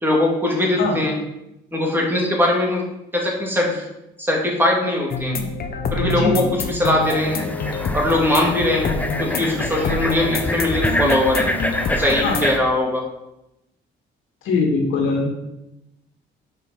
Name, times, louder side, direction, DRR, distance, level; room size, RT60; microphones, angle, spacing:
voice 1, 0.0-1.1 1.7-2.8 3.1-3.9 4.2-5.4 5.9-7.4 7.9-8.9 9.2-11.5 11.9-13.0, left 1 dB, 10° right, -2 dB, 2.4 m, -20 dB
sound 1, 5.1-12.5, left 3 dB, 50° left, 0.9 m, -26 dB
sound 2, 7.0-12.6, left 1 dB, 10° left, 0.7 m, -26 dB
voice 2, 14.4-15.3, left 4 dB, 85° left, 0 dB, 1.8 m, -21 dB
6.8 x 4.6 x 5.7 m, 0.89 s
cardioid pair, 90°, 20 cm